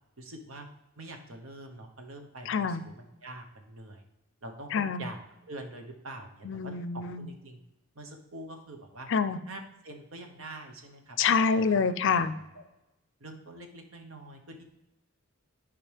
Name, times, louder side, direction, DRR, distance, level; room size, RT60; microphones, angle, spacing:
voice 1, 0.2-0.7 1.0-4.0 4.4-5.2 5.4-7.6 7.9-9.1 9.5-11.8 12.5-12.6 13.2-14.6, right 2 dB, 80° right, 4 dB, 1.0 m, -45 dB
voice 2, 2.5-2.9 4.7-5.0 6.4-7.3 9.1-9.4 11.2-12.3, left 5 dB, 60° left, 12 dB, 0.5 m, -26 dB
10.0 x 5.1 x 3.4 m, 0.96 s
head